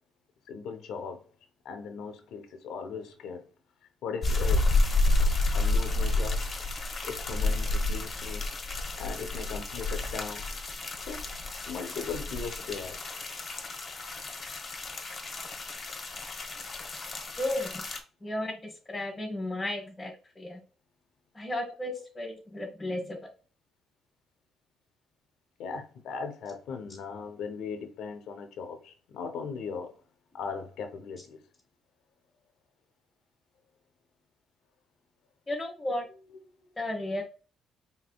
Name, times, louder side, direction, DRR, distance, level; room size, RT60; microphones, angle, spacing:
voice 1, 0.5-1.2 1.6-3.4 4.0-4.7 5.5-6.4 7.0-8.4 9.0-10.5 11.1-11.2 11.7-13.0 17.6-17.7 21.6-21.7 25.6-29.9 30.3-31.4 36.1-36.5, left 5 dB, 80° left, 0.7 m, -38 dB
sound 1, 4.2-18.0, left 2 dB, 40° left, 1.0 m, -30 dB
voice 2, 17.4-17.8 18.2-20.6 21.3-23.2 35.5-36.0 36.8-37.2, left 1 dB, 20° left, 1.1 m, -34 dB
4.2 x 3.6 x 2.3 m
cardioid pair, 85°, 0 cm